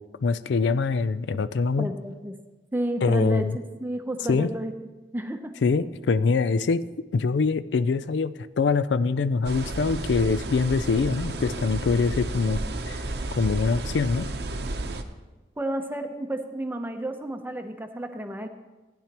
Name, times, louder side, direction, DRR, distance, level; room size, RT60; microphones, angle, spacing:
voice 1, 0.2-1.9 3.0-3.6 4.3-4.5 5.6-6.8 7.1-13.0 13.3-14.3, left 4 dB, 85° left, 14 dB, 0.4 m, -24 dB
voice 2, 1.8-2.4 2.7-4.7 5.1-5.5 15.6-18.5, right 1 dB, 10° right, 6 dB, 0.7 m, -31 dB
sound 1, 9.4-15.0, right 2 dB, 65° right, 0.7 m, -32 dB
16.0 x 10.0 x 3.0 m, 1.2 s
head